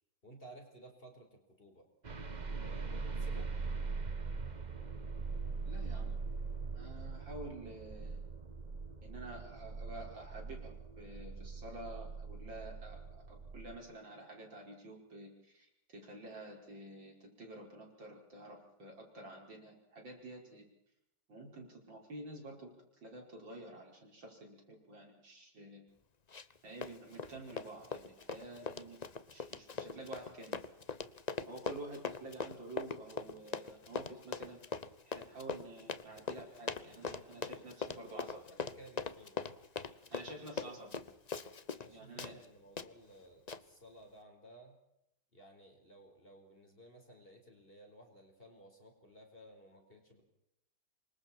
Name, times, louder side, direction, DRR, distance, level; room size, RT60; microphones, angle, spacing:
voice 1, 0.2-1.9 2.6-3.5 37.6-39.4 40.1-40.8 41.7-44.8 45.3-50.2, right 1 dB, 30° left, 2 dB, 4.9 m, -57 dB
sound 1, 2.0-13.8, right 4 dB, 25° right, 1.1 m, -41 dB
voice 2, 5.7-6.1 6.7-8.2 9.0-20.7 21.3-22.7 23.0-25.8 26.6-30.6 31.5-34.6 35.0-38.4 40.1-41.0 41.9-42.3, right 2 dB, 75° right, 1 dB, 6.2 m, -49 dB
Run, 26.3-26.6 26.8-41.9 42.2-42.3 42.8-42.9 43.5-43.6, left 5 dB, 50° left, 0.5 m, -41 dB
27.5 x 24.5 x 4.5 m, 0.82 s
omnidirectional pair, 2.1 m